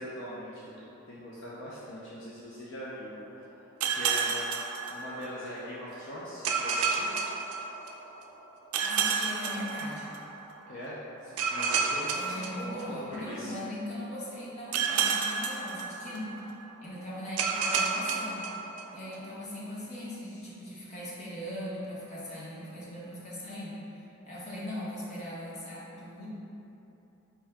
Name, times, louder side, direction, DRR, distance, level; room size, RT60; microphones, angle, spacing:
voice 1, 0.0-3.1 3.9-4.3 4.9-7.1 10.7-12.1 12.5-13.5, equal, 55° left, -7 dB, 0.5 m, -41 dB
sound 1, 3.8-5.6 6.4-8.2 8.7-10.5 11.4-13.4 14.7-16.5 17.4-19.2, right 5 dB, 80° right, 0.4 m, -30 dB
voice 2, 8.8-10.1 12.1-16.5 16.8-18.4 18.9-26.3, left 1 dB, 30° left, -7 dB, 0.8 m, -39 dB
4.5 x 2.7 x 3.3 m, 3.0 s
head